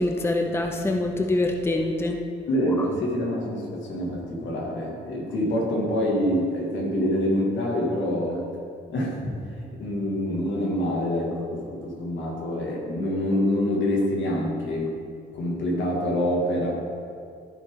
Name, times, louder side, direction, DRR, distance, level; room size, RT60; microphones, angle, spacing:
voice 1, 0.0-2.2, left 2 dB, 10° left, 4 dB, 0.6 m, -24 dB
voice 2, 2.5-8.5 8.9-15.0 15.3-16.8, left 1 dB, 70° left, -2 dB, 2.1 m, -26 dB
13.5 x 4.7 x 3.7 m, 2.4 s
cardioid pair, 90°, 20 cm